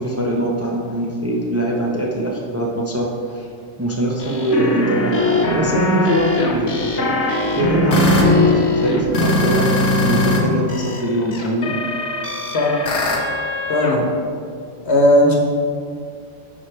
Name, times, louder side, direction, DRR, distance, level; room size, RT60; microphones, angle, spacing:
voice 1, 0.0-3.0 3.3-3.5 3.8-9.7 10.0-11.7, right 1 dB, 15° right, -2 dB, 0.7 m, -22 dB
sound 1, 4.2-10.4 10.7-14.0, left 2 dB, 75° left, 1.3 m, -20 dB
voice 2, 13.7-14.0 14.8-15.3, left 1 dB, 60° left, -1 dB, 1.5 m, -15 dB
9.7 x 4.9 x 4.5 m, 2.3 s
omnidirectional pair, 1.3 m